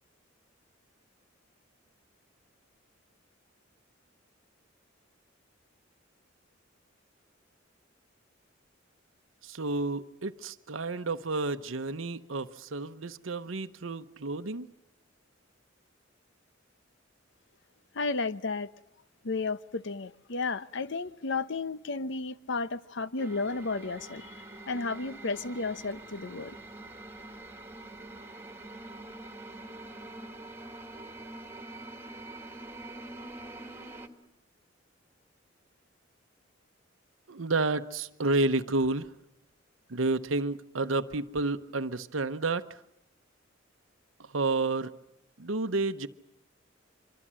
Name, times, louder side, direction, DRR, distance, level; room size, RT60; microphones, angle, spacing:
voice 1, 9.4-14.7 37.3-39.1 39.9-42.8 44.2-44.9 45.4-46.1, right 3 dB, 90° right, 0.9 m, -30 dB
voice 2, 17.9-18.7 19.2-24.3 24.7-26.5, left 3 dB, 65° left, 0.9 m, -33 dB
sound 1, 23.2-34.1, right 2 dB, 15° right, 1.9 m, -45 dB
25.5 x 23.5 x 7.6 m
head